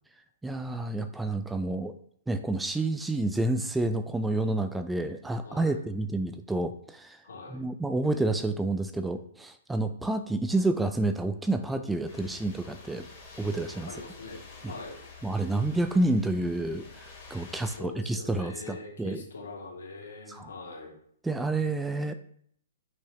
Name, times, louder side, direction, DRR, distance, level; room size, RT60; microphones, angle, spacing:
voice 1, 0.4-2.0 2.3-7.2 7.5-13.1 13.4-13.9 14.6-14.7 15.2-19.2 20.3-20.5 21.2-22.1, right 2 dB, 5° right, 8 dB, 0.4 m, -29 dB
voice 2, 5.4-5.8 7.2-7.6 13.9-15.0 17.6-20.9, left 3 dB, 70° left, -2 dB, 2.5 m, -43 dB
sound 1, 12.0-17.8, left 4 dB, 30° left, 2.4 m, -48 dB
6.0 x 5.5 x 3.0 m, 0.64 s
figure-of-eight pair, 120°, 0 cm